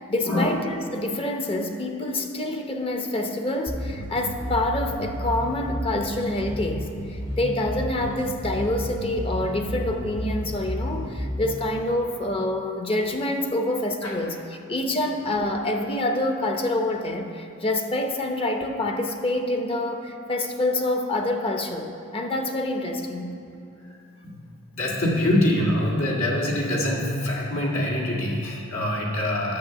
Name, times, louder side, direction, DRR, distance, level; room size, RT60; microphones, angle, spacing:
voice 1, 0.0-14.4 14.7-23.3, left 1 dB, 25° left, 4 dB, 0.7 m, -27 dB
sound 1, 3.7-11.7, equal, 60° left, 2.6 m, -32 dB
voice 2, 24.7-29.6, left 1 dB, 75° left, -3 dB, 2.0 m, -24 dB
8.6 x 6.9 x 6.8 m, 2.7 s
head